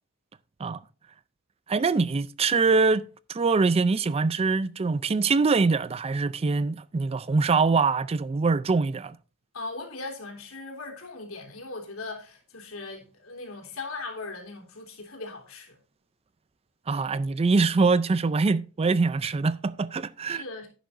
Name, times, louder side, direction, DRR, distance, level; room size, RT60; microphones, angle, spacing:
voice 1, 1.7-3.0 3.3-9.2 16.9-20.4, right 4 dB, 30° right, 0.4 m, -23 dB
voice 2, 9.5-15.8 20.3-20.7, left 3 dB, 75° left, 3.5 m, -39 dB
11.5 x 9.2 x 2.6 m
head